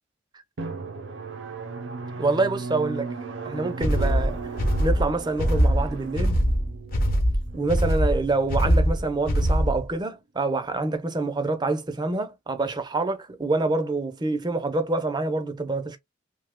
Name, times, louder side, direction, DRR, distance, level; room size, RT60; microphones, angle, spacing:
Drum, 0.6-9.9, right 4 dB, 70° right, 0.6 m, -37 dB
voice 1, 2.2-3.1 3.5-4.4 4.8-6.4 7.5-16.0, right 3 dB, 20° right, 0.5 m, -26 dB
sound 1, 3.8-9.9, equal, 50° left, 0.9 m, -22 dB
2.7 x 2.1 x 3.5 m
head